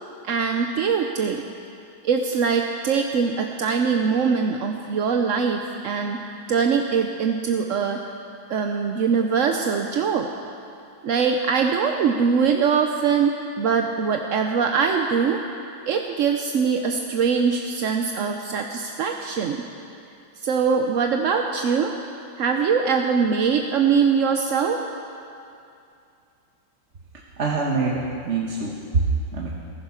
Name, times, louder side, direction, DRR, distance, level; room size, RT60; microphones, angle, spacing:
voice 1, 0.2-1.4 2.0-8.0 8.5-10.3 11.0-15.4 15.9-19.7 20.4-21.9 22.4-24.8, right 6 dB, 60° right, 4 dB, 0.8 m, -22 dB
voice 2, 27.4-29.0 29.3-29.5, right 4 dB, 45° right, -2 dB, 1.3 m, -24 dB
15.5 x 14.5 x 5.8 m, 2.5 s
omnidirectional pair, 2.0 m